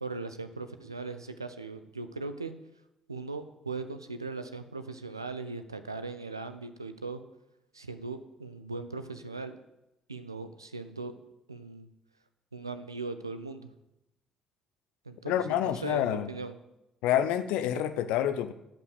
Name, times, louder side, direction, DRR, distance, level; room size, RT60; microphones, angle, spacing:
voice 1, 0.0-2.5 3.1-7.2 7.7-9.5 10.1-11.2 11.5-11.9 12.5-13.7 15.1-16.5, right 3 dB, 85° right, 10 dB, 0.6 m, -39 dB
voice 2, 15.3-16.3 17.0-18.5, left 11 dB, 65° left, 11 dB, 0.6 m, -28 dB
11.5 x 5.7 x 8.0 m, 0.90 s
figure-of-eight pair, 45°, 2 cm